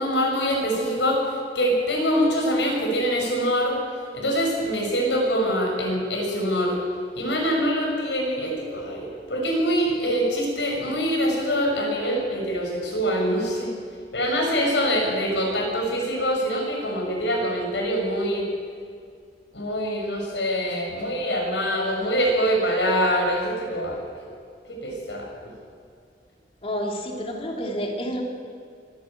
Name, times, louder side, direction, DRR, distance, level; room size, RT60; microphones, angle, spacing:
voice 1, 0.0-3.8 4.1-6.8 7.2-13.7 14.1-18.5 19.5-24.0 24.7-25.3, equal, 80° left, 0 dB, 6.4 m, -24 dB
voice 2, 26.6-28.2, equal, 35° left, 0 dB, 3.4 m, -29 dB
24.5 x 12.5 x 8.8 m, 2.2 s
head